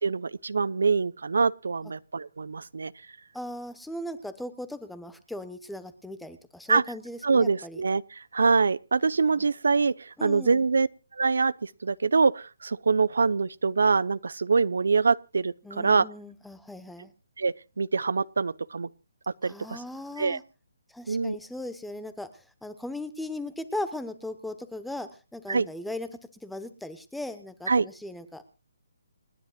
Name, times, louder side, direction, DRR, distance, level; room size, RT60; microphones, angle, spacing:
voice 1, 0.0-2.9 6.7-6.8 7.2-10.9 11.1-16.1 17.4-18.9 19.3-19.8 20.2-20.4 21.1-21.4 25.5-25.7 27.7-27.9, right 4 dB, 85° right, 0.9 m, -25 dB
voice 2, 3.3-7.8 9.3-9.5 10.2-10.7 15.6-17.1 19.4-20.4 20.9-28.4, left 1 dB, ahead, 1.1 m, -38 dB
29.5 x 10.5 x 2.4 m
hypercardioid pair, 175°, 0 cm